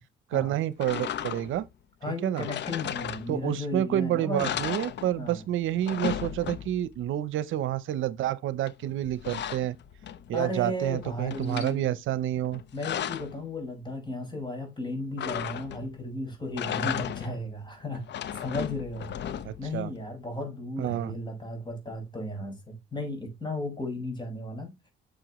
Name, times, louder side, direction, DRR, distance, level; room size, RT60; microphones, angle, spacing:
voice 1, 0.3-1.7 2.2-2.4 3.3-9.8 10.3-12.6 19.4-19.9 20.8-21.1, right 12 dB, 80° right, 0.8 m, -29 dB
sound 1, 0.8-1.7 2.4-3.6 4.0-4.1 4.4-5.4 5.7-7.0 8.7-10.4 10.8-11.8 12.4-13.4 15.2-16.0 16.4-17.5 17.9-19.7, left 9 dB, 65° left, 0.8 m, -35 dB
voice 2, 2.0-4.6 5.2-5.4 10.3-12.0 12.7-19.1 19.6-24.7, left 1 dB, 20° left, 5.4 m, -35 dB
9.9 x 6.5 x 3.1 m
cardioid pair, 90°, 20 cm